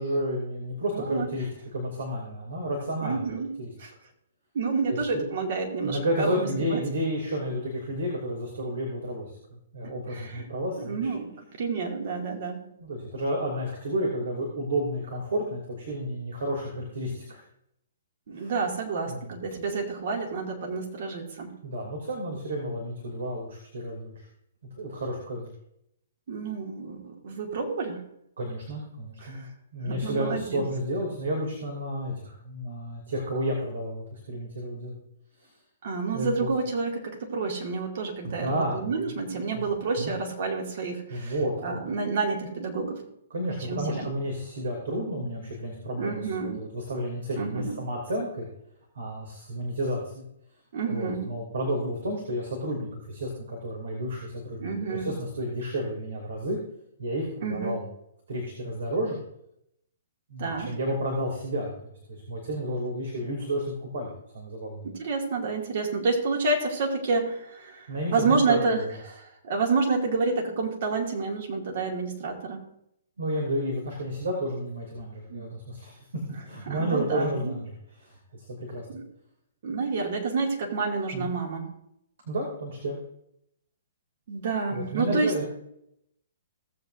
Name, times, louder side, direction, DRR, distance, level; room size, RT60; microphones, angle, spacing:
voice 1, 0.0-1.5 1.7-3.3 3.6-3.7 4.9-5.3 5.8-11.1 12.8-17.4 18.3-18.5 19.1-19.4 21.6-24.3 24.8-25.5 28.4-29.5 29.7-35.0 35.4-35.5 36.1-36.5 38.2-38.9 39.5-39.6 40.0-40.1 41.1-41.8 43.3-46.3 46.6-48.5 48.9-50.2 50.9-56.6 57.0-57.8 58.3-59.2 60.3-64.9 67.9-68.9 73.2-78.9 81.1-81.3 82.2-83.0 84.7-85.5, equal, 70° right, -1 dB, 2.8 m, -31 dB
voice 2, 0.9-1.3 3.0-3.5 3.8-3.9 4.5-6.8 10.1-10.5 10.8-11.3 11.6-12.7 18.3-21.5 26.3-28.0 29.2-29.5 29.8-30.6 35.8-41.3 41.6-43.0 43.7-44.1 46.0-46.6 47.4-47.8 50.7-51.3 54.6-55.1 57.4-57.8 60.4-60.7 64.8-72.6 75.3-75.5 76.7-77.5 78.9-79.0 79.6-81.7 84.3-85.4, right 4 dB, 55° right, 1 dB, 2.4 m, -29 dB
17.0 x 8.0 x 2.6 m, 0.77 s
hypercardioid pair, 130°, 0 cm